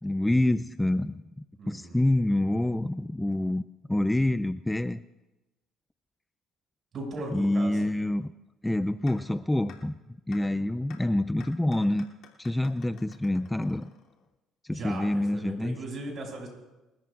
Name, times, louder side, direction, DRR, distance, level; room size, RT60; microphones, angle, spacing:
voice 1, 0.0-3.6 3.9-5.0 7.3-8.3 8.6-10.0 10.3-12.1 12.4-13.9 14.6-15.8, left 1 dB, 10° left, 13 dB, 0.4 m, -27 dB
voice 2, 1.6-2.0 6.9-7.8 10.4-10.7 14.7-16.5, right 2 dB, 50° right, 0 dB, 6.2 m, -38 dB
sound 1, 9.1-9.2 9.7-9.8 10.3-10.4 10.9-11.0 11.4-14.3, left 8 dB, 70° left, 2.8 m, -51 dB
30.0 x 13.5 x 2.5 m, 1.0 s
supercardioid pair, 85°, 0 cm